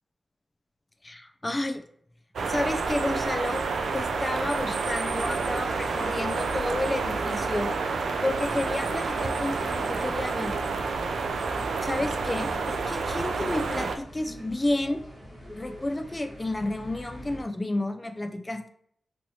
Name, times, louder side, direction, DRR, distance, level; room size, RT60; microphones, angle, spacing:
voice 1, 1.0-1.8 2.5-3.6 3.9-7.8 8.2-10.6 11.8-15.0 15.5-18.7, left 1 dB, 15° left, 5 dB, 0.3 m, -31 dB
sound 1, 2.4-14.0, right 4 dB, 85° right, 0.3 m, -29 dB
sound 2, 7.9-17.4, equal, 15° right, 1.3 m, -44 dB
3.0 x 3.0 x 2.7 m, 0.64 s
wide cardioid pair, 180°, 0 cm